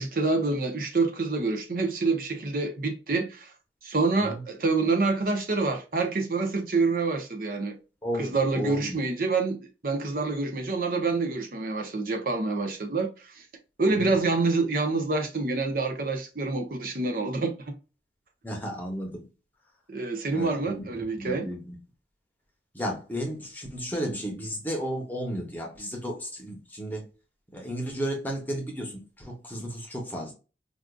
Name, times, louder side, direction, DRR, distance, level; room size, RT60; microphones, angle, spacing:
voice 1, 0.0-3.5 3.8-7.8 8.1-13.4 13.8-17.5 19.9-21.5, right 3 dB, 50° right, 0.7 m, -27 dB
voice 2, 8.0-9.0 13.9-14.1 18.4-19.2 20.3-21.8 22.7-27.0 27.5-30.3, equal, 10° left, 0.8 m, -33 dB
4.9 x 2.5 x 2.3 m
head